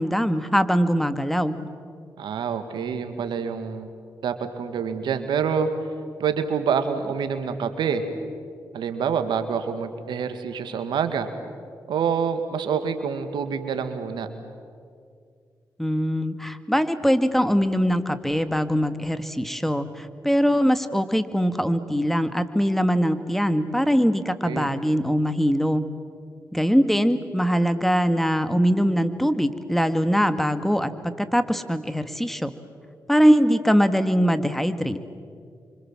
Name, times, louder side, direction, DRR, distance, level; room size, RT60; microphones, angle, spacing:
voice 1, 0.0-1.6 15.8-25.9 26.5-32.5 33.1-35.0, equal, 5° left, 10 dB, 2.0 m, -22 dB
voice 2, 2.2-3.9 4.2-5.7 6.2-8.1 8.7-11.3 11.9-14.3 24.4-24.7, right 6 dB, 80° right, 9 dB, 1.9 m, -26 dB
28.0 x 25.0 x 7.5 m, 2.2 s
supercardioid pair, 45°, 8 cm